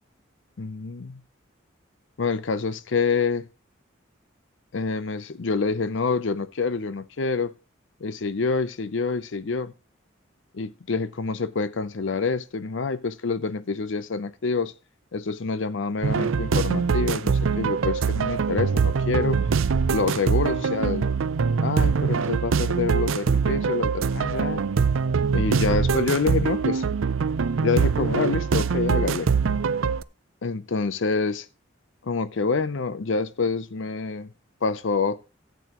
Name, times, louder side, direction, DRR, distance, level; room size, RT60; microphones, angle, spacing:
voice 1, 0.6-1.2 2.2-3.5 4.7-7.5 8.0-9.7 10.5-14.7 15.1-19.4 19.9-21.1 21.6-24.6 25.3-26.8 27.6-29.3 30.4-31.5 32.0-34.3 34.6-35.2, left 4 dB, 70° left, 0.6 m, -27 dB
sound 1, 16.0-30.0, right 5 dB, 90° right, 0.5 m, -23 dB
14.5 x 8.4 x 3.0 m
head